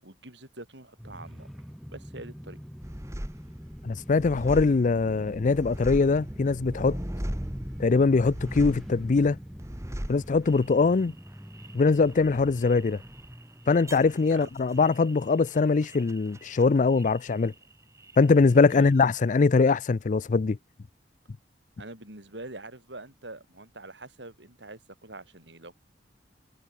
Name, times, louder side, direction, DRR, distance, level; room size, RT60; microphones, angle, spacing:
voice 1, 0.0-1.5 1.9-2.6 14.1-14.5 18.7-18.9 21.8-25.8, right 2 dB, 85° right, 8.0 m, -44 dB
sound 1, 1.0-19.5, equal, ahead, 1.8 m, -45 dB
sound 2, 2.8-17.7 18.0-18.8, equal, 15° right, 1.9 m, -40 dB
voice 2, 3.8-7.0 7.8-9.4 10.1-11.1 11.7-13.0 13.7-17.5 18.2-20.6, left 4 dB, 45° left, 0.4 m, -22 dB
head